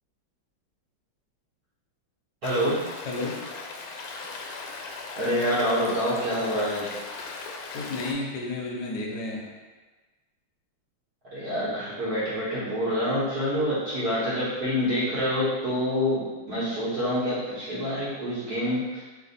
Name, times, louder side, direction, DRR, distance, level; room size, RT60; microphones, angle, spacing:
Stream, 2.4-8.1, left 4 dB, 85° left, 1.4 m, -38 dB
voice 1, 2.4-2.8 5.2-6.9 11.3-19.0, equal, 55° right, -10 dB, 1.3 m, -27 dB
voice 2, 3.0-3.4 7.7-9.5, left 2 dB, 65° left, -1 dB, 1.1 m, -31 dB
3.3 x 2.6 x 4.0 m, 1.3 s
omnidirectional pair, 2.3 m